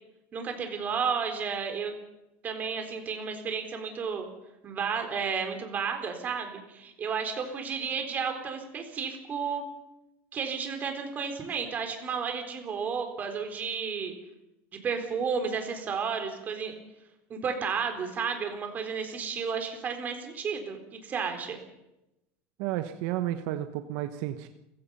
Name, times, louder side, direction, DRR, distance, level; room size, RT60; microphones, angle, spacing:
voice 1, 0.3-1.9 2.4-4.3 4.6-9.6 10.3-14.1 14.8-16.7 17.3-21.6, right 6 dB, 25° right, 5 dB, 3.9 m, -32 dB
voice 2, 22.6-24.5, right 13 dB, 70° right, 9 dB, 1.2 m, -32 dB
29.5 x 16.0 x 5.6 m, 0.91 s
cardioid pair, 160°, 6 cm